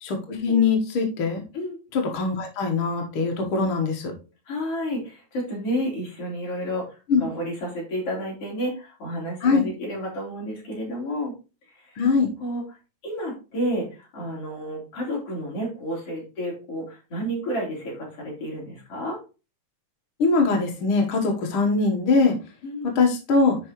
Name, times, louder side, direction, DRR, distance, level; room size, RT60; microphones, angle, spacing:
voice 1, 0.0-1.4 1.9-4.1 7.1-7.2 9.4-9.6 12.0-12.3 20.2-22.4 22.8-23.6, left 4 dB, 70° left, 2 dB, 1.2 m, -22 dB
voice 2, 4.5-11.3 11.9-12.0 12.4-12.6 13.0-19.2 22.6-22.9, equal, 40° left, -4 dB, 4.4 m, -31 dB
8.5 x 5.4 x 3.0 m, 0.31 s
omnidirectional pair, 4.4 m